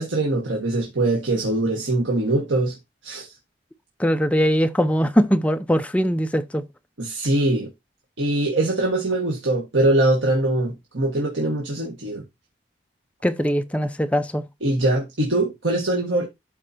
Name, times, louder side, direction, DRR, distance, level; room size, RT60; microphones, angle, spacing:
voice 1, 0.0-2.8 3.0-3.3 7.0-7.7 8.2-12.2 14.6-16.2, right 2 dB, 85° right, 1.8 m, -22 dB
voice 2, 4.0-6.6 13.2-14.4, equal, 5° left, 0.5 m, -21 dB
12.5 x 4.5 x 2.9 m
head